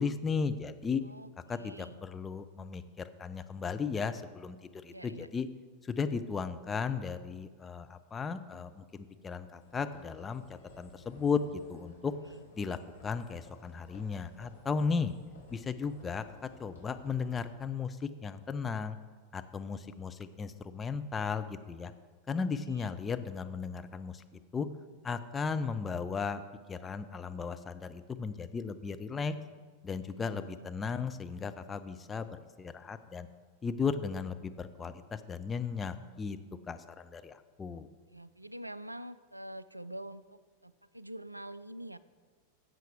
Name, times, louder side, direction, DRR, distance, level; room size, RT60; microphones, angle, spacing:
voice 1, 0.0-1.0 1.5-5.5 5.8-10.4 10.8-12.1 12.6-15.1 15.5-16.2 16.6-19.0 19.3-21.9 22.3-24.2 24.5-24.7 25.0-26.4 26.7-29.3 29.8-33.3 33.6-36.4 36.7-37.9, left 5 dB, 15° left, 9 dB, 0.6 m, -35 dB
voice 2, 1.0-2.0 4.9-5.3 12.2-12.5 22.7-22.9 30.1-31.1 38.1-42.0, right 1 dB, 85° right, 16 dB, 0.3 m, -46 dB
sound 1, 9.6-17.5, left 2 dB, 70° left, 2.9 m, -57 dB
16.0 x 7.6 x 3.5 m, 1.5 s
figure-of-eight pair, 90°, 0 cm